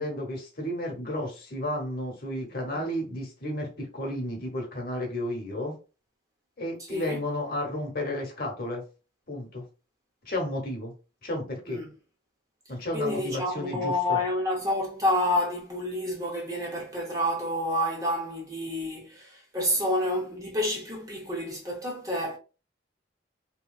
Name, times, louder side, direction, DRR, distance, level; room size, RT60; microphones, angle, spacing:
voice 1, 0.0-5.7 6.6-8.8 9.3-9.6 10.2-10.9 11.2-11.8 12.7-14.2, left 1 dB, 50° left, 1.0 m, -32 dB
voice 2, 6.8-7.2 11.7-11.9 12.9-22.4, left 1 dB, 20° right, 0.7 m, -29 dB
3.0 x 2.8 x 2.3 m
head